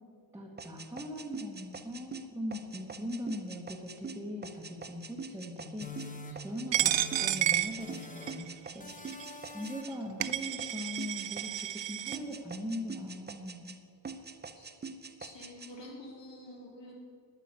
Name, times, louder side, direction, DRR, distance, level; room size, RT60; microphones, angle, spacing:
voice 1, 0.3-9.3 9.5-13.7, left 1 dB, 5° right, -2 dB, 1.2 m, -41 dB
sound 1, 0.6-9.9 10.2-11.9 12.1-13.8 14.0-15.7, right 4 dB, 25° right, 0.6 m, -44 dB
sound 2, 5.8-7.5 7.8-8.5 8.8-10.1, left 2 dB, 20° left, 0.9 m, -46 dB
Coin (dropping), 6.7-8.5 9.1-9.3 9.9-10.0 10.2-12.2, right 12 dB, 80° right, 0.6 m, -31 dB
voice 2, 15.2-16.9, left 1 dB, 80° left, -3 dB, 3.1 m, -48 dB
10.0 x 9.6 x 8.2 m, 2.2 s
wide cardioid pair, 175°, 43 cm